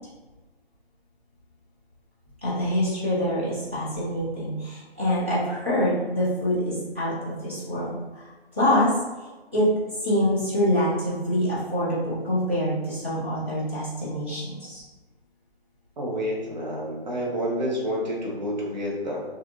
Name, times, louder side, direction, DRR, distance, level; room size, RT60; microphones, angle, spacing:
voice 1, 2.4-8.9 9.2-14.8, equal, 15° right, -12 dB, 0.4 m, -25 dB
voice 2, 16.0-19.2, equal, 45° right, -4 dB, 0.9 m, -29 dB
2.9 x 2.4 x 2.5 m, 1.2 s
figure-of-eight pair, 155°, 32 cm